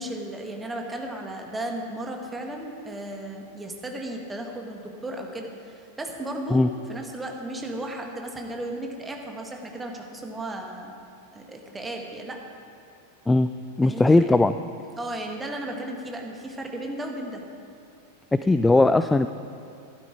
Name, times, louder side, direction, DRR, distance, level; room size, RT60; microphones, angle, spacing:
voice 1, 0.0-6.6 6.9-10.9 11.3-12.4 13.8-14.2 15.0-17.4, right 1 dB, 10° right, 2 dB, 1.7 m, -35 dB
voice 2, 13.8-14.5 18.3-19.3, left 2 dB, 10° left, 11 dB, 0.3 m, -18 dB
13.0 x 12.0 x 4.7 m, 2.5 s
figure-of-eight pair, 90°, 0 cm